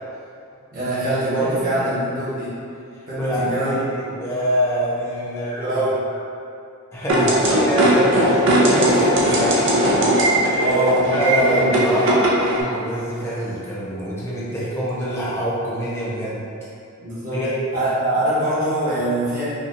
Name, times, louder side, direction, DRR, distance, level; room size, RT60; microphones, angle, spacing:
voice 1, 0.7-2.5 3.1-3.7 5.5-6.2 7.1-7.5 10.6-11.7 17.0-17.4 17.7-19.4, right 1 dB, 40° right, -11 dB, 1.1 m, -23 dB
voice 2, 1.4-1.8 3.2-5.8 6.9-9.9 10.4-10.8 11.1-12.3 12.5-16.4 17.3-17.5, equal, 10° left, -8 dB, 0.5 m, -25 dB
sound 1, 7.1-12.6, right 1 dB, 60° right, 0.5 m, -18 dB
4.0 x 2.4 x 2.5 m, 2.5 s
head